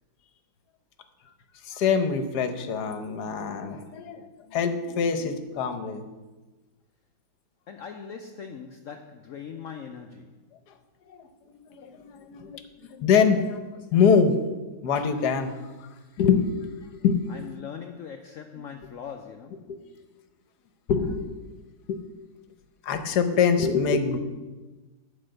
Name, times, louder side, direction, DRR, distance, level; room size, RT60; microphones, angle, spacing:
voice 1, 1.6-6.0 11.2-11.3 11.6-12.6 13.0-13.6 13.9-14.4 14.8-15.6 16.2-16.7 17.0-17.5 19.7-19.8 20.9-21.3 21.9-22.0 22.8-24.2, left 6 dB, 65° left, 9 dB, 1.3 m, -24 dB
voice 2, 7.7-10.4 17.3-19.7, left 7 dB, 80° left, 5 dB, 0.7 m, -41 dB
10.0 x 5.2 x 7.6 m, 1.2 s
omnidirectional pair, 2.1 m